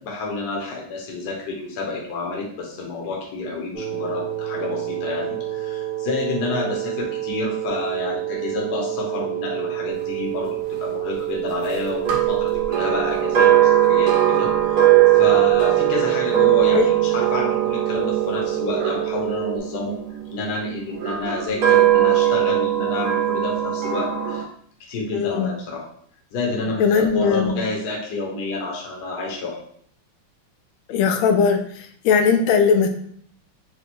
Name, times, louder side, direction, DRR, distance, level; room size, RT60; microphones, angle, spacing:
voice 1, 0.0-20.0 20.3-24.5 24.9-25.8 26.3-29.6, left 3 dB, 60° left, -2 dB, 1.3 m, -29 dB
sound 1, 3.7-19.6, right 15 dB, 10° right, 0.8 m, -29 dB
sound 2, 12.0-20.2 20.9-24.4, right 12 dB, 55° right, 1.2 m, -19 dB
voice 2, 25.1-25.5 26.8-27.6 30.9-31.6 32.0-32.9, left 6 dB, 85° left, 6 dB, 1.4 m, -18 dB
4.3 x 2.3 x 4.2 m, 0.63 s
omnidirectional pair, 2.2 m